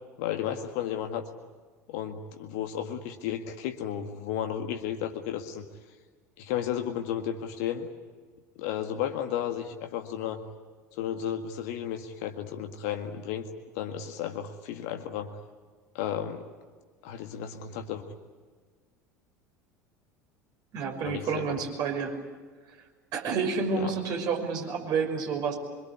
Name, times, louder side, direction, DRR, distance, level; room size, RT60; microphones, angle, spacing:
voice 1, 0.2-1.2 1.9-5.7 6.4-7.9 8.6-10.4 10.9-13.5 13.8-15.4 15.9-16.4 17.0-18.1 21.0-21.6 23.8-23.9, left 10 dB, 60° left, 5 dB, 1.9 m, -33 dB
voice 2, 20.7-22.2 23.1-25.6, right 5 dB, 45° right, 3 dB, 5.8 m, -29 dB
25.0 x 23.0 x 9.7 m, 1.5 s
figure-of-eight pair, 70°, 9 cm